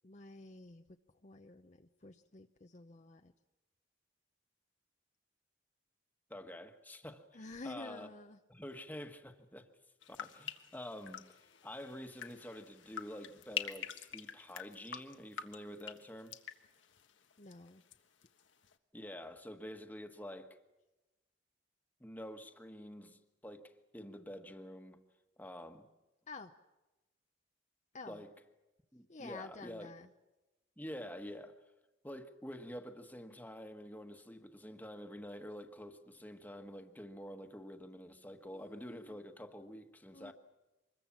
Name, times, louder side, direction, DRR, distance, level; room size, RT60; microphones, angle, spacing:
voice 1, 0.0-3.3 7.3-8.4 17.4-17.8 26.3-26.5 27.9-28.2 29.1-30.1 38.4-39.2 40.1-40.3, left 3 dB, 40° left, 0.7 m, -50 dB
voice 2, 6.3-7.3 7.6-8.1 8.5-9.7 10.1-16.4 18.9-20.6 22.0-25.0 25.4-25.9 28.1-28.3 28.9-29.9 30.8-31.5 32.0-40.3, equal, 10° left, 1.4 m, -48 dB
sound 1, 10.0-18.0 18.2-18.7, left 8 dB, 80° left, 1.4 m, -46 dB
25.5 x 21.5 x 7.4 m
head